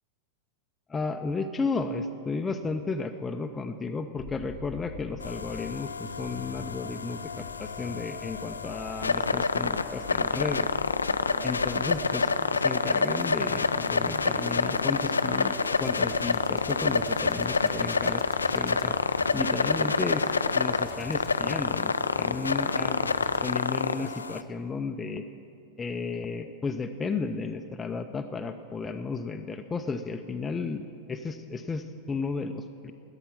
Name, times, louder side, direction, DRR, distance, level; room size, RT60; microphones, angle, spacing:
voice 1, 0.9-10.7 11.4-15.5 15.8-18.2 18.5-18.9 19.3-21.9 22.2-25.2 25.8-32.9, left 4 dB, 15° left, 5 dB, 0.5 m, -33 dB
sound 1, 4.2-23.4, left 6 dB, 35° left, 0.9 m, -44 dB
sound 2, 5.2-24.4, left 4 dB, 75° left, 0.4 m, -28 dB
13.0 x 9.8 x 7.1 m, 2.5 s
figure-of-eight pair, 90°, 0 cm